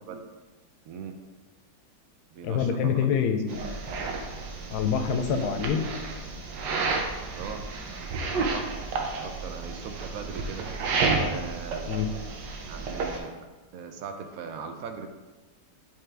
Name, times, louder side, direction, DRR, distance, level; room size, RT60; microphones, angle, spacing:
voice 1, 0.8-1.2 2.3-3.4 7.3-7.6 8.3-8.9 9.2-10.7 11.2-11.9 12.6-13.4 13.7-15.1, right 6 dB, 70° right, 5 dB, 0.9 m, -39 dB
voice 2, 2.4-3.8 4.7-5.9 11.9-12.1, left 7 dB, 70° left, 7 dB, 1.1 m, -26 dB
sound 1, 3.5-13.2, right 4 dB, 85° right, 1.4 m, -31 dB
8.4 x 3.5 x 3.3 m, 1.2 s
omnidirectional pair, 1.8 m